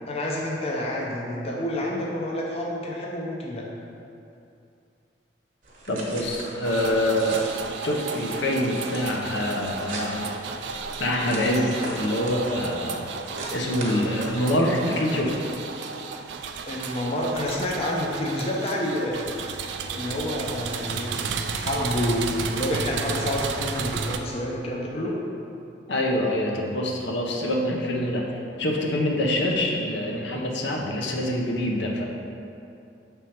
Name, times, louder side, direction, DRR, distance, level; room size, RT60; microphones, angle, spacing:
voice 1, 0.1-3.7 16.7-19.3 19.9-21.1 21.6-25.2, left 1 dB, 35° left, -2 dB, 0.5 m, -28 dB
sound 1, 5.6-15.5, right 1 dB, 50° right, 1.0 m, -40 dB
voice 2, 5.9-7.4 7.8-10.3 11.0-13.1 13.5-15.3 25.9-28.3 28.6-32.0, left 1 dB, 75° left, -1 dB, 0.7 m, -25 dB
sound 2, 6.6-24.2, right 5 dB, 70° right, 0.3 m, -33 dB
6.2 x 3.6 x 4.3 m, 2.6 s
head